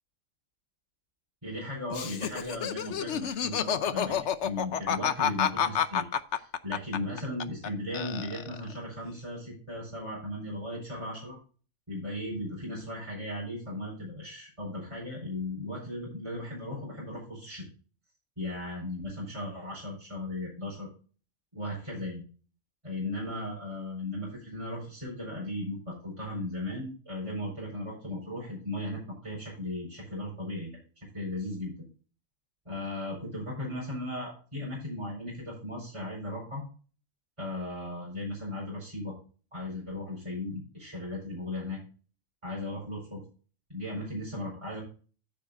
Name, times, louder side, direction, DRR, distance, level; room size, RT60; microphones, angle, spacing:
voice 1, 1.4-11.4 11.9-17.6 18.4-20.9 21.5-22.2 22.8-31.7 32.6-36.6 37.4-39.2 39.5-41.8 42.4-43.2 43.7-44.8, left 1 dB, 20° right, -4 dB, 4.9 m, -37 dB
Laughter, 1.9-7.7 7.9-8.7, left 8 dB, 60° left, 1.0 m, -29 dB
14.0 x 7.7 x 2.5 m, 0.38 s
omnidirectional pair, 1.4 m